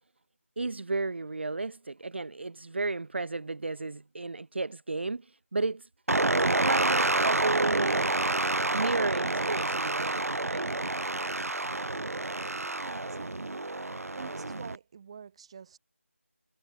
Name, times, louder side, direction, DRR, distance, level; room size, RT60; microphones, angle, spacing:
voice 1, 0.6-5.9 6.6-8.1 8.7-10.7, right 3 dB, 50° right, 0.9 m, -33 dB
sound 1, 6.1-14.8, right 2 dB, 90° right, 0.6 m, -28 dB
voice 2, 12.5-13.6 14.1-15.8, right 7 dB, 25° right, 7.9 m, -47 dB
figure-of-eight pair, 170°, 8 cm